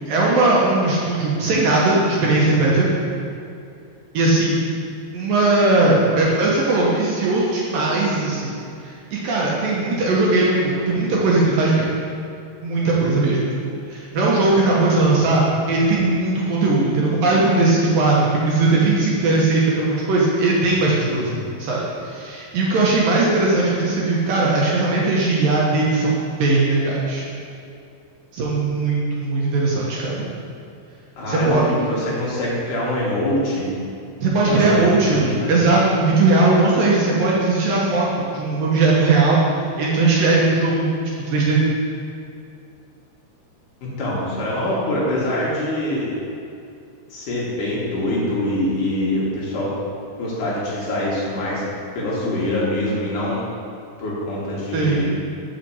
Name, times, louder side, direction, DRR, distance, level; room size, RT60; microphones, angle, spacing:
voice 1, 0.1-2.9 4.1-4.6 5.1-8.5 8.8-11.9 12.6-13.4 13.9-21.3 21.6-27.2 28.3-30.2 31.3-31.6 34.2-35.2 35.5-40.9 41.3-41.6 54.7-55.1, right 3 dB, 70° right, -4 dB, 2.4 m, -19 dB
voice 2, 31.2-33.7 34.5-35.5 44.0-46.2 47.1-49.7 50.2-51.6 51.9-53.4 54.0-55.1, left 1 dB, 60° left, -6 dB, 2.7 m, -24 dB
6.5 x 5.7 x 7.2 m, 2.5 s
omnidirectional pair, 4.7 m